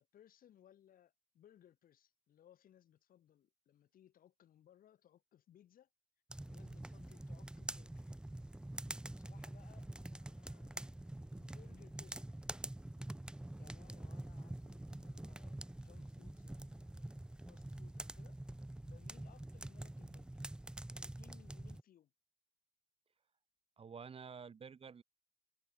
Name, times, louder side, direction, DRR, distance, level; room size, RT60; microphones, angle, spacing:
voice 1, 0.0-5.9 6.5-8.1 9.1-10.9 11.3-12.7 13.6-18.4 18.8-20.4 20.9-22.1, left 10 dB, 55° left, 5.2 m, -66 dB
sound 1, 6.3-21.8, right 1 dB, 5° right, 0.6 m, -46 dB
voice 2, 23.8-25.0, right 6 dB, 35° right, 3.7 m, -50 dB
cardioid pair, 110°, 17 cm